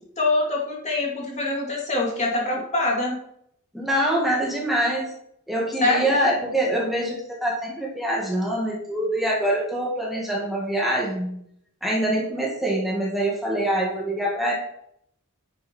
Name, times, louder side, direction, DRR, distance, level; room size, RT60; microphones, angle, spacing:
voice 1, 0.2-3.2 5.8-6.1, left 2 dB, 30° left, -2 dB, 2.4 m, -24 dB
voice 2, 3.7-5.1 5.5-11.3 11.8-14.5, right 1 dB, ahead, -4 dB, 2.2 m, -24 dB
10.0 x 6.6 x 4.6 m, 0.71 s
head